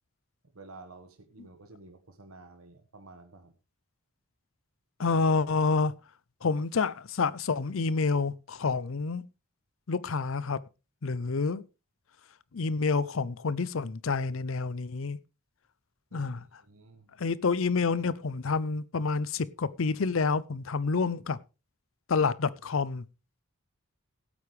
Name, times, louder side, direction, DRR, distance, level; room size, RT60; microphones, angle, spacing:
voice 1, 0.5-3.5 16.1-17.1, right 3 dB, 90° right, 1.4 m, -51 dB
voice 2, 5.0-5.9 6.4-9.2 9.9-10.6 11.0-11.6 12.5-15.2 16.1-16.4 17.2-21.4 22.1-23.0, left 4 dB, 70° left, 0.6 m, -28 dB
17.0 x 8.4 x 3.3 m
head